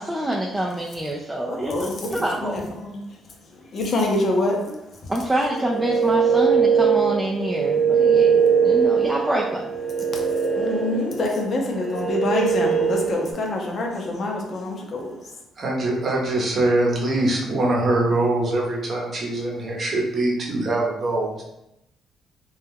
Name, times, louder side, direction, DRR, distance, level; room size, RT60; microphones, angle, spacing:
voice 1, 0.0-2.6 5.1-9.7, right 1 dB, 10° right, -2 dB, 0.3 m, -26 dB
voice 2, 1.5-5.1 10.1-15.4, left 2 dB, 55° left, 0 dB, 0.6 m, -26 dB
sound 1, 5.5-13.3, right 6 dB, 30° right, 1.0 m, -21 dB
voice 3, 15.6-21.4, right 2 dB, 50° right, -2 dB, 0.7 m, -23 dB
2.3 x 2.1 x 3.2 m, 0.85 s
cardioid pair, 90°, 0 cm